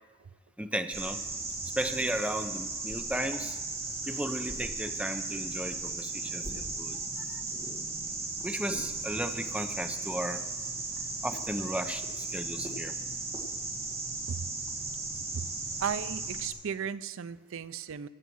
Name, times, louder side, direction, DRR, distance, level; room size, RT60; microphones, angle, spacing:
voice 1, 0.6-1.2 1.8-3.6 4.0-7.4 8.4-10.4 11.2-12.9, right 1 dB, 5° right, 7 dB, 0.7 m, -35 dB
sound 1, 0.9-16.5, right 3 dB, 30° right, 2.1 m, -36 dB
voice 2, 15.8-18.1, right 7 dB, 70° right, 15 dB, 0.5 m, -35 dB
16.5 x 8.1 x 6.3 m, 1.3 s
head